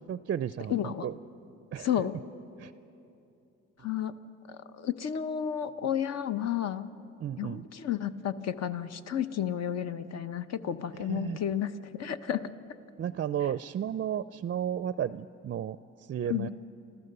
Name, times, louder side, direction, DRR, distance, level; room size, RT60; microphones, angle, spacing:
voice 1, 0.1-1.1 1.7-1.9 2.6-2.7 7.2-7.7 11.0-11.4 13.0-16.5, right 9 dB, 40° right, 14 dB, 0.4 m, -33 dB
voice 2, 0.7-1.1 1.8-2.1 3.8-4.1 4.5-6.9 7.4-12.5 16.2-16.5, left 9 dB, 60° left, 11 dB, 0.9 m, -32 dB
27.0 x 14.5 x 6.8 m, 2.7 s
cardioid pair, 90°, 30 cm